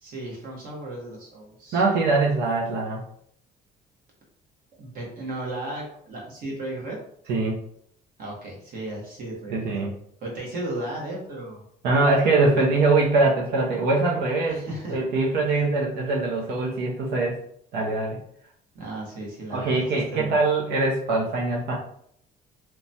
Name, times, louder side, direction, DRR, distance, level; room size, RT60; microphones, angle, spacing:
voice 1, 0.0-1.8 4.8-7.0 8.2-9.8 10.2-11.7 12.5-12.7 14.5-15.0 15.5-15.7 18.7-19.9 20.1-20.4, right 1 dB, 60° right, -2 dB, 1.2 m, -35 dB
voice 2, 1.7-3.0 7.3-7.6 9.5-9.9 11.8-14.6 14.9-17.4 17.7-18.2 19.5-21.8, right 3 dB, 75° right, -2 dB, 0.6 m, -22 dB
3.0 x 2.2 x 2.6 m, 0.68 s
cardioid pair, 110°, 17 cm